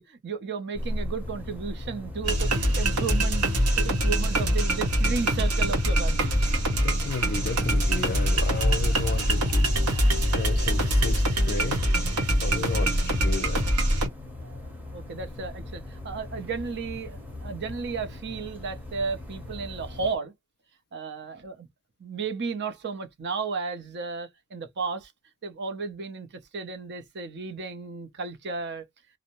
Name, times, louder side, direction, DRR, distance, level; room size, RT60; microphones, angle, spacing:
voice 1, 0.0-6.4 14.4-20.3 20.9-21.7 22.0-25.1 25.4-26.3 26.5-28.8, right 5 dB, 50° right, 0.6 m, -34 dB
sound 1, 0.7-20.2, left 1 dB, 10° right, 0.8 m, -40 dB
sound 2, 2.2-14.1, right 1 dB, 80° right, 1.0 m, -24 dB
voice 2, 6.7-9.7 10.3-11.8 12.3-13.7, left 4 dB, 45° left, 0.5 m, -33 dB
2.6 x 2.0 x 2.9 m
head